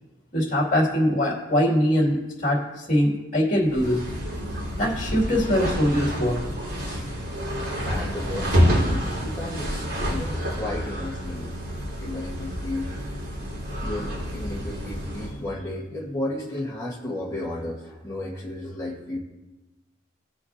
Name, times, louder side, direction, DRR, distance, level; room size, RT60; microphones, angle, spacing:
voice 1, 0.3-4.0 4.8-6.4 6.9-7.0, equal, 35° left, -2 dB, 2.5 m, -22 dB
sound 1, 3.7-15.4, equal, 75° right, 2.6 m, -28 dB
voice 2, 7.8-11.5 12.0-12.9 13.8-19.2, left 1 dB, 15° left, -5 dB, 1.5 m, -33 dB
19.0 x 6.5 x 2.8 m, 1.1 s
head